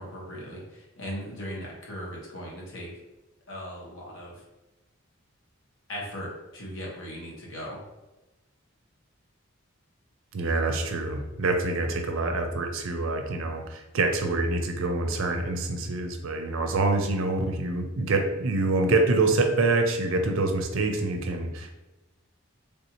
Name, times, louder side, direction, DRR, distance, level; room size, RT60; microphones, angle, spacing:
voice 1, 0.0-2.9 3.5-4.4 5.9-7.8, equal, 65° left, -3 dB, 0.9 m, -38 dB
voice 2, 10.3-21.7, right 2 dB, 65° right, 5 dB, 0.5 m, -26 dB
3.4 x 2.7 x 2.9 m, 1.0 s
head